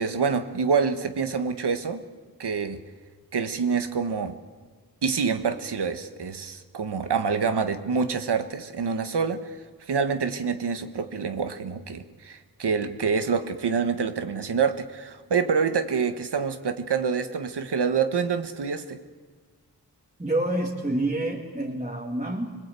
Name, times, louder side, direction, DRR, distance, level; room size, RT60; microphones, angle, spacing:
voice 1, 0.0-2.0 2.4-2.8 3.3-4.4 5.0-9.6 9.9-19.0, right 5 dB, 85° right, 8 dB, 1.5 m, -26 dB
voice 2, 20.2-22.6, right 1 dB, 20° right, -2 dB, 2.2 m, -28 dB
25.5 x 21.5 x 8.4 m, 1.5 s
wide cardioid pair, 110°, 39 cm